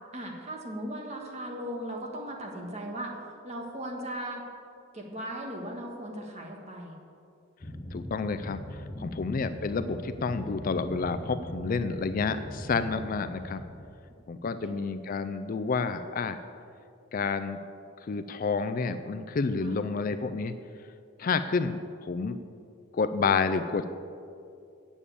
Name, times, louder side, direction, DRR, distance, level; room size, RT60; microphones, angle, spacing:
voice 1, 0.1-3.1 3.4-4.4 4.9-6.9 8.9-9.2 14.6-14.8 19.6-19.8, right 1 dB, 35° right, 1 dB, 1.5 m, -38 dB
sound 1, 7.6-13.9, left 1 dB, 25° left, 0.8 m, -40 dB
voice 2, 7.9-8.6 9.0-13.6 14.3-16.4 17.1-17.6 18.1-20.5 21.2-21.8 22.0-22.4 22.9-23.9, left 4 dB, 40° left, 10 dB, 0.4 m, -29 dB
8.2 x 7.2 x 8.6 m, 2.5 s
head